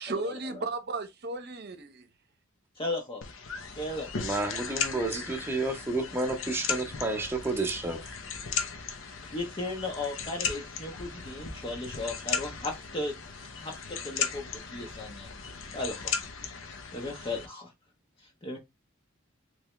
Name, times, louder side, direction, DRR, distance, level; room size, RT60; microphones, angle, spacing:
voice 1, 0.0-2.1, right 3 dB, 55° right, 0.8 m, -35 dB
voice 2, 2.8-3.2 3.8-4.3 9.2-14.4 14.7-15.3 15.7-16.1 16.6-17.7 18.4-18.6, left 2 dB, 25° left, 0.6 m, -36 dB
sound 1, 3.2-17.5, left 6 dB, 70° left, 0.7 m, -37 dB
voice 3, 4.2-8.1, right 2 dB, 10° right, 0.7 m, -30 dB
3.3 x 3.1 x 3.0 m
head